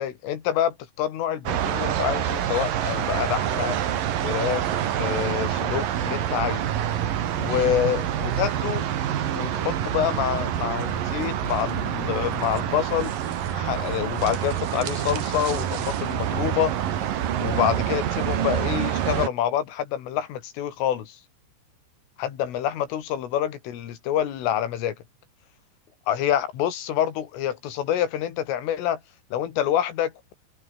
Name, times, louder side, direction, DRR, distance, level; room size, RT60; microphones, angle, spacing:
voice 1, 0.0-3.8 4.2-4.7 5.0-6.7 7.4-8.9 9.3-13.2 13.5-16.7 17.4-21.2 22.2-25.0 26.1-29.0 29.3-30.1, left 10 dB, 85° left, 5.3 m, -27 dB
sound 1, 1.5-19.3, right 10 dB, 55° right, 3.0 m, -27 dB
omnidirectional pair, 5.6 m